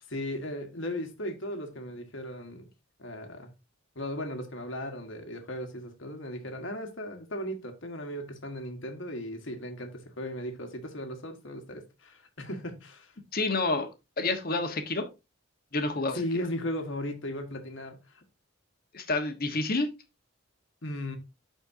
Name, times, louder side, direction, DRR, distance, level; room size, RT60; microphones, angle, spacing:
voice 1, 0.1-2.7 3.0-3.5 3.9-13.1 16.1-18.2 20.8-21.2, left 1 dB, 60° left, 1.5 m, -36 dB
voice 2, 13.3-13.9 14.2-15.0 15.7-16.2 18.9-19.9, left 3 dB, 45° left, 1.3 m, -28 dB
13.0 x 4.4 x 2.7 m
head